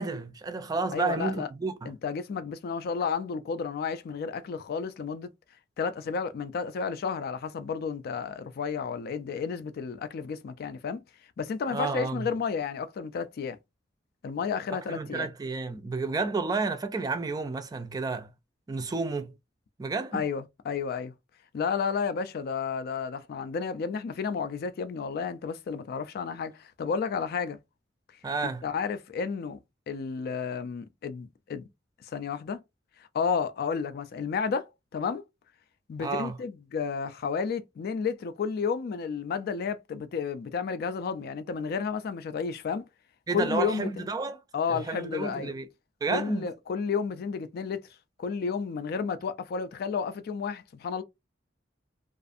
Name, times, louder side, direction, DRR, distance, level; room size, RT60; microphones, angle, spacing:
voice 1, 0.0-1.9 11.7-12.3 14.9-18.3 18.7-19.3 19.8-20.2 28.2-28.6 36.0-36.3 43.3-44.4 44.7-45.7 46.0-46.5, right 4 dB, 20° right, 0.3 m, -31 dB
voice 2, 0.9-1.5 1.9-5.3 5.8-11.0 11.4-13.6 14.2-15.3 20.1-21.1 21.5-27.6 28.6-29.6 29.9-31.7 32.1-32.6 33.1-35.2 35.9-42.8 43.3-44.1 44.5-45.5 46.1-47.8 48.2-51.0, left 6 dB, 55° left, 0.3 m, -32 dB
2.4 x 2.4 x 2.5 m
head